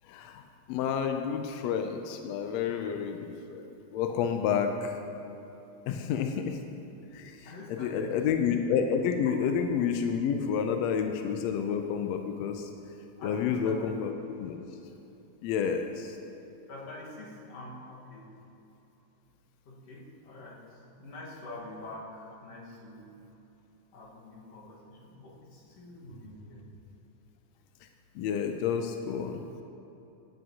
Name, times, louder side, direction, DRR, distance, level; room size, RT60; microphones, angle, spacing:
voice 1, 0.1-0.4 0.7-5.0 5.9-6.6 7.1-12.7 13.2-14.6 15.4-16.1 28.1-29.4, left 7 dB, 80° left, 5 dB, 1.5 m, -30 dB
voice 2, 7.1-8.2 13.2-13.9 16.7-18.3 19.7-23.1 23.9-26.7, left 2 dB, 60° left, -4 dB, 2.5 m, -45 dB
15.0 x 7.5 x 2.8 m, 3.0 s
omnidirectional pair, 3.4 m